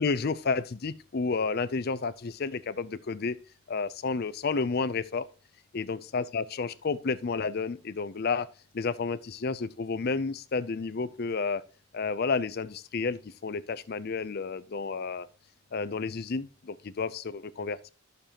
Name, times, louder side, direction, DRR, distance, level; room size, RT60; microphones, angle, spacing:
voice 1, 0.0-3.4 3.7-5.3 5.7-8.5 8.7-11.6 11.9-15.3 15.7-17.9, left 4 dB, 50° left, 0.5 m, -31 dB
11.5 x 6.7 x 2.9 m
head